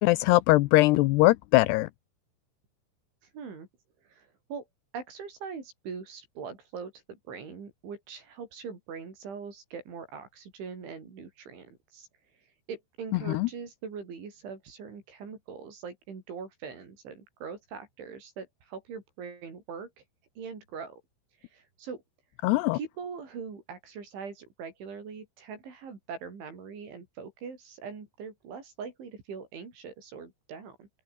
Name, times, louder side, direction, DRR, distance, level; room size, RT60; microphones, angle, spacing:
voice 1, 0.0-1.9 13.3-13.5 22.4-22.8, left 20 dB, 85° left, 2.5 m, -21 dB
voice 2, 3.3-3.7 4.0-4.7 4.9-12.1 12.7-19.9 20.4-21.0 21.4-22.0 22.7-30.9, right 6 dB, 80° right, 8.6 m, -42 dB
open air
omnidirectional pair, 5.3 m